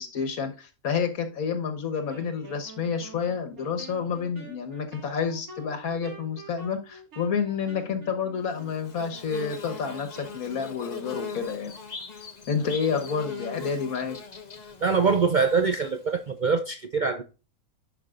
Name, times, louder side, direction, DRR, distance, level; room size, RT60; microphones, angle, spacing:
voice 1, 0.0-11.7 12.5-14.2, left 6 dB, 75° left, 1.7 m, -29 dB
Wind instrument woodwind instrument, 2.1-10.4, right 3 dB, 80° right, 2.4 m, -47 dB
Bird / Buzz, 8.5-16.2, left 5 dB, 35° left, 1.0 m, -40 dB
voice 2, 14.8-17.2, right 5 dB, 55° right, 0.5 m, -24 dB
11.0 x 5.4 x 2.5 m
omnidirectional pair, 1.5 m